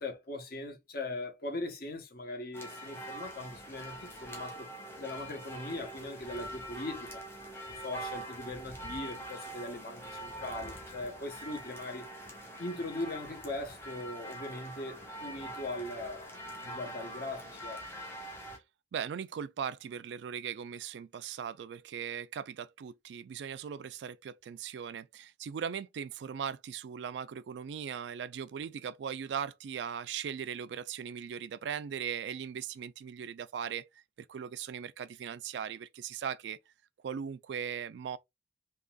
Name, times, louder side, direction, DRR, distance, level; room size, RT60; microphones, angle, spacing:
voice 1, 0.0-4.7 5.0-7.2 7.7-12.1 12.6-17.8, left 2 dB, 60° left, 1.1 m, -40 dB
sound 1, 2.5-18.6, right 1 dB, 15° left, 1.1 m, -44 dB
voice 2, 18.9-33.9 34.3-36.6 37.0-38.2, right 7 dB, 80° right, 0.3 m, -39 dB
3.9 x 2.8 x 2.3 m
head